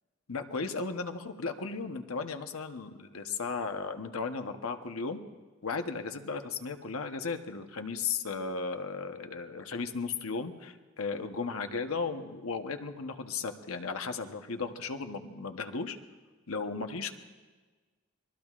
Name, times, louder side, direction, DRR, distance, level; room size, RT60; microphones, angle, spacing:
voice 1, 0.3-5.2 5.6-16.0 16.5-17.1, left 4 dB, 85° left, 6 dB, 1.0 m, -35 dB
26.5 x 20.5 x 2.4 m, 1.3 s
head